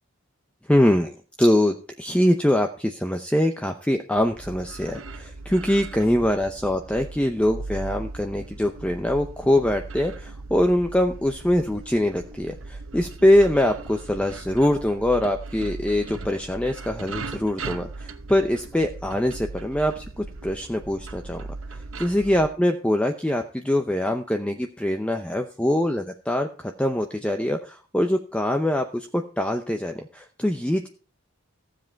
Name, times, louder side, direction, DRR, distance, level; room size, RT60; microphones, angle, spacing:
voice 1, 0.7-21.4 21.7-30.9, left 1 dB, 5° left, 5 dB, 0.6 m, -23 dB
sound 1, 4.2-22.5, right 3 dB, 75° right, 1.0 m, -38 dB
15.0 x 7.6 x 4.5 m, 0.38 s
head